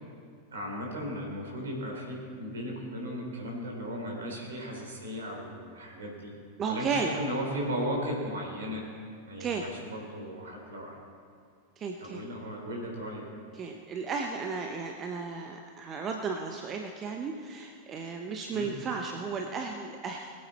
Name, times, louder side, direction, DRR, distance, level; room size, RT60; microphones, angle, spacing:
voice 1, 0.5-6.3 6.7-8.9 9.3-11.0 12.0-13.3 18.5-18.7, equal, 65° right, -1 dB, 3.5 m, -36 dB
voice 2, 6.6-7.1 9.4-9.7 11.8-12.2 13.5-20.3, right 5 dB, 25° right, 3 dB, 0.9 m, -34 dB
21.5 x 8.8 x 4.2 m, 2.2 s
figure-of-eight pair, 90°, 0 cm